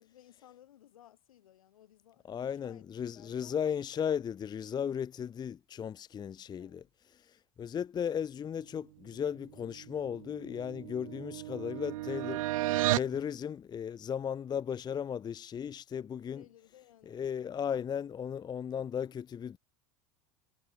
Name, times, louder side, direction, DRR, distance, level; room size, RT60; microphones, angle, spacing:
voice 1, 0.0-2.8 3.1-3.7 6.6-6.9 16.3-17.2, left 12 dB, 75° left, 3.0 m, -59 dB
voice 2, 2.3-6.8 7.1-16.4 17.1-19.6, left 8 dB, 25° left, 0.7 m, -36 dB
sound 1, 10.0-13.2, right 17 dB, 70° right, 0.5 m, -33 dB
hypercardioid pair, 85°, 18 cm